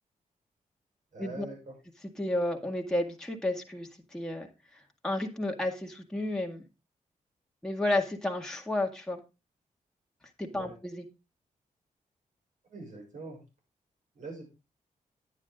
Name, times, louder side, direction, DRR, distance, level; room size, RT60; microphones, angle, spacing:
voice 1, 1.1-1.7 10.5-10.7 12.7-13.4 14.1-14.5, right 3 dB, 65° right, 0 dB, 6.6 m, -43 dB
voice 2, 2.2-4.5 4.7-6.6 7.6-9.2 10.4-11.0, left 1 dB, 5° left, 1 dB, 1.8 m, -32 dB
10.0 x 9.7 x 3.7 m, 0.27 s
cardioid pair, 90°, 14 cm